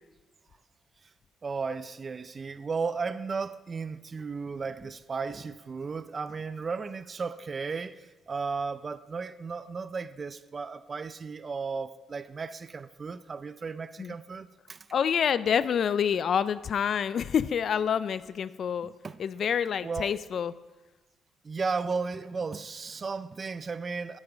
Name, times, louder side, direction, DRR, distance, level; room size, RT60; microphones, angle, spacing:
voice 1, 1.4-14.9 19.0-19.2 19.8-20.1 21.4-24.2, right 4 dB, 35° right, 0.4 m, -35 dB
voice 2, 14.9-18.9 19.2-20.5, left 8 dB, 60° left, 0.3 m, -27 dB
10.5 x 8.2 x 6.0 m
cardioid pair, 90°, 0 cm